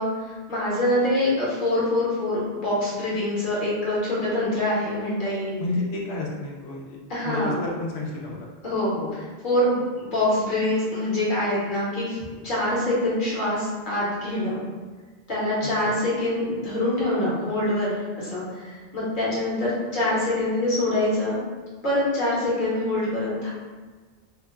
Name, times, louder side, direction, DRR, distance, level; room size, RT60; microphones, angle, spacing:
voice 1, 0.0-5.6 7.1-7.6 8.6-12.2 12.4-14.6 15.3-21.4 21.8-23.5, left 1 dB, 55° left, -8 dB, 1.0 m, -25 dB
voice 2, 5.6-7.0 7.2-8.5 15.6-15.7, left 2 dB, 85° left, -2 dB, 0.9 m, -30 dB
2.9 x 2.1 x 2.2 m, 1.4 s
omnidirectional pair, 1.1 m